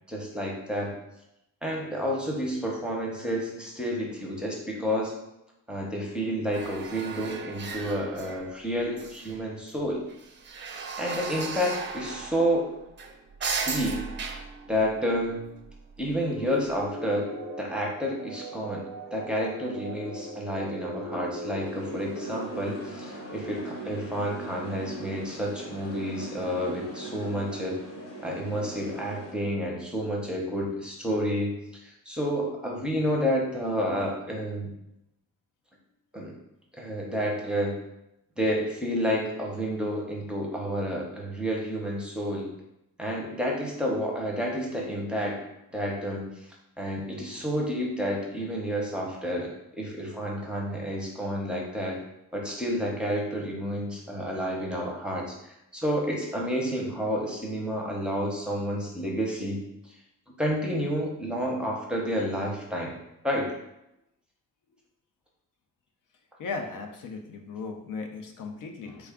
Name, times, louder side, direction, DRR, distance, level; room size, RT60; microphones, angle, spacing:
voice 1, 0.1-1.0 1.6-5.1 5.7-10.0 11.0-12.7 13.6-14.0 14.7-15.4 16.0-27.8 28.2-34.7 36.1-36.3 36.7-37.8 38.4-42.5 43.0-45.4 45.7-46.5 46.8-52.0 52.3-60.0 60.4-62.9 63.2-63.5, equal, 5° right, -2 dB, 0.7 m, -30 dB
sound 1, 6.5-8.7 9.0-9.7 10.1-16.1 16.7-16.8, right 5 dB, 35° right, 0.4 m, -37 dB
sound 2, 16.2-29.9, right 2 dB, 85° right, 0.5 m, -40 dB
sound 3, 21.6-29.3, left 1 dB, 45° left, 0.9 m, -45 dB
voice 2, 66.4-69.1, left 4 dB, 70° left, 4 dB, 0.6 m, -37 dB
3.4 x 2.3 x 3.5 m, 0.85 s
cardioid pair, 105°, 32 cm